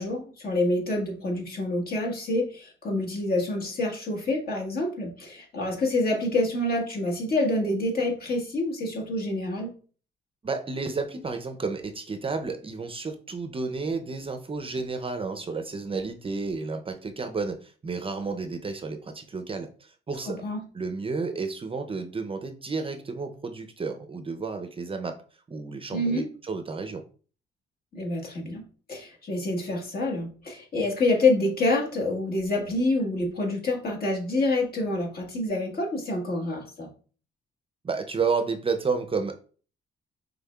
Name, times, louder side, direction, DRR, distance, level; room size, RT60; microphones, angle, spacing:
voice 1, 0.0-9.7 20.2-20.6 25.9-26.3 27.9-28.6 28.9-36.9, left 2 dB, 50° left, 0 dB, 1.5 m, -27 dB
voice 2, 10.4-20.4 20.7-25.2 25.5-27.0 37.8-39.3, right 4 dB, 25° right, 7 dB, 0.5 m, -31 dB
5.4 x 3.5 x 2.3 m, 0.41 s
cardioid pair, 90°, 20 cm